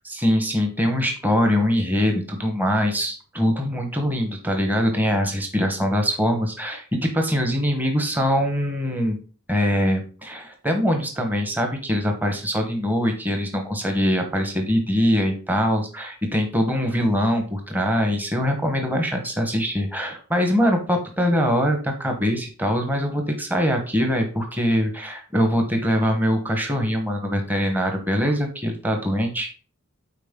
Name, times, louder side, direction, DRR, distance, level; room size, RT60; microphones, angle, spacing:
voice 1, 0.0-9.2 9.5-29.5, equal, 10° right, 4 dB, 1.0 m, -23 dB
9.2 x 4.2 x 3.6 m, 0.38 s
head